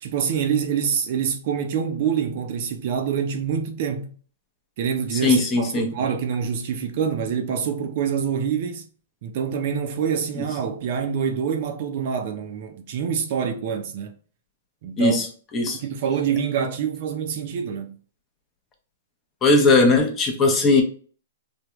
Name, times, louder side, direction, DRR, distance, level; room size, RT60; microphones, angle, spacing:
voice 1, 0.0-4.1 4.8-8.9 9.2-14.1 14.8-15.3 15.6-18.0, right 7 dB, 50° right, 0.5 m, -26 dB
voice 2, 5.2-5.9 15.0-15.2 15.5-15.8 19.4-20.8, left 3 dB, 20° left, 0.6 m, -18 dB
3.4 x 2.2 x 3.0 m
hypercardioid pair, 150°, 0 cm